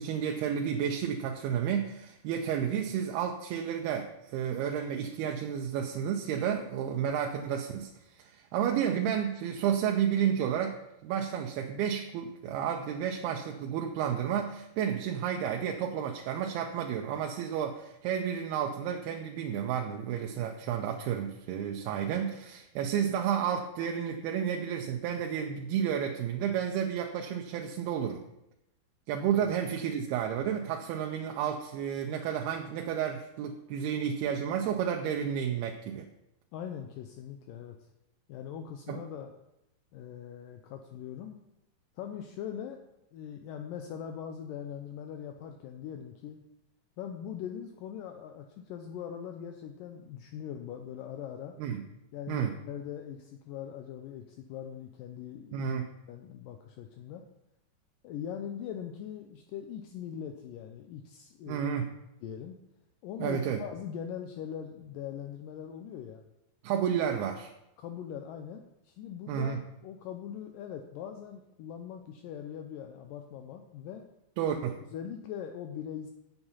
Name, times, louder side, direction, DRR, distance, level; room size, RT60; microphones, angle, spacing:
voice 1, 0.0-28.2 29.1-36.1 38.9-39.0 51.6-51.8 52.3-52.5 55.5-55.9 61.5-61.9 63.2-63.6 66.6-67.5 69.3-69.6 74.4-74.8, right 8 dB, 85° right, 2 dB, 2.6 m, -31 dB
voice 2, 36.5-37.8 38.3-39.3 39.9-41.4 42.0-42.8 43.1-46.4 47.0-51.5 52.1-55.7 56.1-57.2 58.0-61.6 62.2-62.6 63.0-66.2 67.8-69.6 69.8-74.1 74.9-76.1, left 9 dB, 85° left, 5 dB, 2.0 m, -41 dB
8.0 x 7.3 x 5.5 m, 0.86 s
omnidirectional pair, 4.5 m